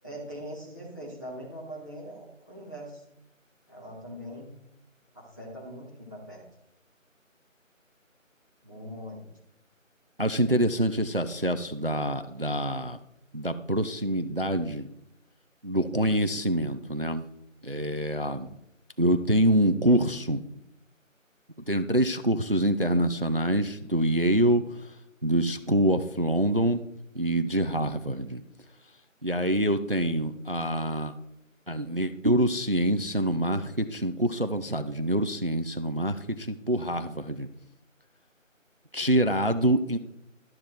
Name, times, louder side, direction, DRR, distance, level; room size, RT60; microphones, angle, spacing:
voice 1, 0.0-3.0 3.7-4.5 5.1-6.4 8.6-9.3, equal, 15° left, -5 dB, 1.7 m, -41 dB
voice 2, 10.2-13.0 13.3-14.9 15.6-17.2 17.6-18.6 19.0-20.4 21.7-26.8 27.1-28.4 29.2-31.1 31.7-37.5 38.9-40.0, right 1 dB, 45° right, 10 dB, 0.5 m, -26 dB
12.0 x 6.9 x 4.4 m, 0.83 s
figure-of-eight pair, 170°, 40 cm